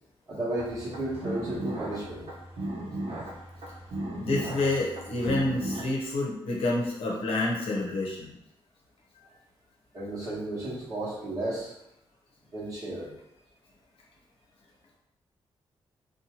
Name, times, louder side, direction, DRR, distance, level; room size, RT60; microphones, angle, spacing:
voice 1, 0.3-2.3 9.9-11.7 12.5-13.1, right 1 dB, 30° right, -8 dB, 1.0 m, -33 dB
sound 1, 0.6-5.8, right 1 dB, 75° right, 0.8 m, -36 dB
voice 2, 4.2-8.3, left 2 dB, 70° left, -3 dB, 0.7 m, -28 dB
2.7 x 2.2 x 2.9 m, 0.81 s
wide cardioid pair, 170°, 10 cm